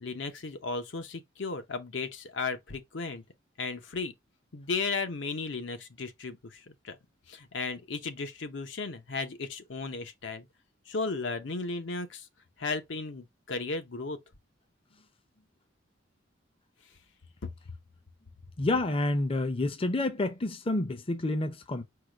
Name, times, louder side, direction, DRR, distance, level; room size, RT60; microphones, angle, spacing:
voice 1, 0.0-3.2 3.6-4.1 4.5-6.4 6.8-7.0 7.3-10.5 10.9-12.3 12.6-14.2, left 4 dB, 65° left, 0.8 m, -35 dB
voice 2, 18.6-21.8, left 2 dB, 30° left, 0.5 m, -29 dB
4.8 x 2.2 x 4.8 m
head